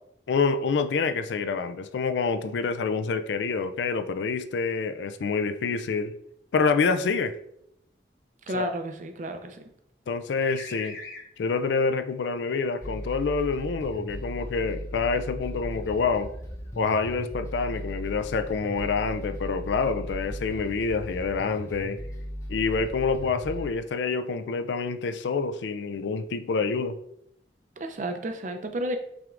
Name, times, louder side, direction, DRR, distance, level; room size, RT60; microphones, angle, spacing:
voice 1, 0.3-6.1 6.5-7.4 8.5-8.7 10.1-11.0 11.4-16.3 16.8-22.0 22.5-27.0, left 4 dB, 80° left, 10 dB, 0.4 m, -27 dB
voice 2, 8.5-9.6 27.8-29.0, right 1 dB, 45° right, 7 dB, 0.5 m, -32 dB
sound 1, 8.7-9.4 10.4-11.3 12.3-14.2 14.8-18.1 18.6-19.0 19.8-20.8 21.5-22.2 22.7-23.7, left 3 dB, 50° left, 1.3 m, -48 dB
sound 2, 12.8-23.7, equal, 15° left, 0.5 m, -37 dB
6.0 x 3.4 x 2.5 m, 0.76 s
head